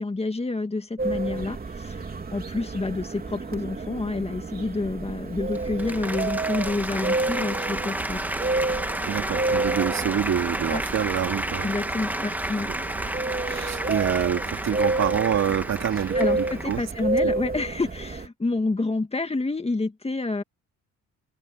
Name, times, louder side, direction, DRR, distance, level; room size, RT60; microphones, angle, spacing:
voice 1, 0.0-8.2 10.7-10.8 11.6-12.7 16.1-20.4, left 3 dB, 20° left, 2.2 m, -28 dB
sound 1, 1.0-18.3, right 3 dB, 30° right, 3.8 m, -30 dB
Applause, 5.4-17.0, right 1 dB, 5° right, 1.8 m, -32 dB
voice 2, 9.0-11.7 13.5-16.8 17.2-17.3, right 9 dB, 60° right, 3.3 m, -27 dB
cardioid pair, 90°, 30 cm